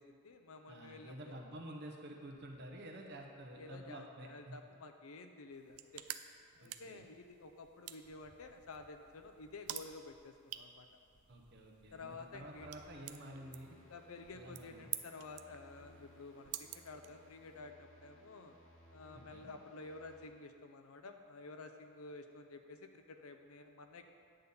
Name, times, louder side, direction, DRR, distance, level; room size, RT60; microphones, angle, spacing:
voice 1, 0.0-1.2 3.6-6.1 6.6-10.9 11.9-12.7 13.8-18.6 18.9-24.0, left 3 dB, 85° left, 6 dB, 0.6 m, -52 dB
voice 2, 0.7-4.6 6.6-7.1 11.3-13.7 14.3-14.9 19.1-19.5, right 1 dB, 55° right, 1 dB, 1.0 m, -50 dB
sound 1, 2.3-4.6 5.8-14.4 14.8-15.1 15.4-15.9 16.7-17.6 18.1-18.2 18.4-18.5, equal, 5° left, 1.3 m, -73 dB
sound 2, 5.5-17.6, right 13 dB, 85° right, 0.4 m, -50 dB
sound 3, 12.6-20.3, equal, 65° left, 1.6 m, -62 dB
9.0 x 4.0 x 7.0 m, 2.2 s
head